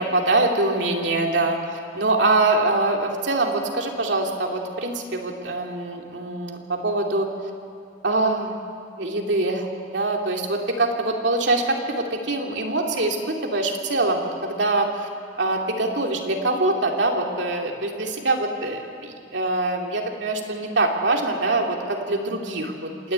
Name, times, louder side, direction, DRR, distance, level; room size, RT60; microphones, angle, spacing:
voice 1, 0.0-7.3 8.0-8.6 9.0-9.7 9.9-15.1 15.4-23.1, right 2 dB, 90° right, 1 dB, 2.6 m, -24 dB
27.0 x 11.0 x 9.2 m, 2.3 s
head